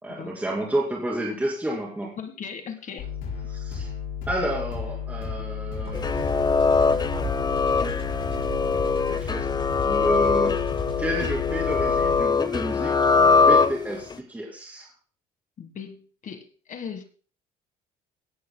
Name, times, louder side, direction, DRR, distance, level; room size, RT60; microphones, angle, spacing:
voice 1, 0.0-2.2 3.5-3.9 4.3-6.3 8.3-8.7 8.9-10.6 11.0-14.9, right 1 dB, 10° right, -2 dB, 2.6 m, -31 dB
voice 2, 2.2-3.1 15.6-17.0, left 7 dB, 50° left, 7 dB, 1.5 m, -38 dB
sound 1, 3.0-12.2, left 7 dB, 90° left, 4.9 m, -33 dB
sound 2, 5.8-13.2, right 5 dB, 35° right, 5.5 m, -41 dB
sound 3, 5.9-14.2, left 4 dB, 25° left, 0.7 m, -22 dB
17.0 x 11.5 x 2.2 m, 0.39 s
cardioid pair, 110°, 17 cm